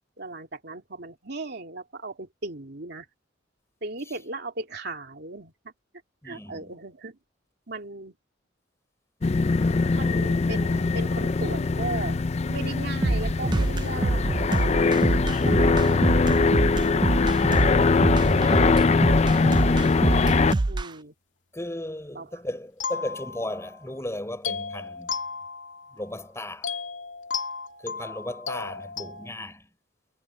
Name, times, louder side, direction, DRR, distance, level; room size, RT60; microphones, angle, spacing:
voice 1, 0.2-3.1 3.8-5.5 6.2-7.2 7.7-8.1 9.9-12.2 12.5-19.0 19.7-19.8 20.1-20.3 20.7-21.1 22.2-22.3, right 2 dB, 60° right, 2.8 m, -37 dB
voice 2, 6.2-6.7 21.5-25.2 25.9-26.8 27.8-29.7, left 1 dB, 15° left, 6.5 m, -36 dB
sound 1, 9.2-20.5, left 4 dB, 35° left, 0.4 m, -22 dB
sound 2, 13.0-20.9, right 2 dB, 25° right, 0.4 m, -25 dB
sound 3, 22.8-23.9 24.4-26.2 26.6-29.3, left 5 dB, 85° left, 2.3 m, -34 dB
head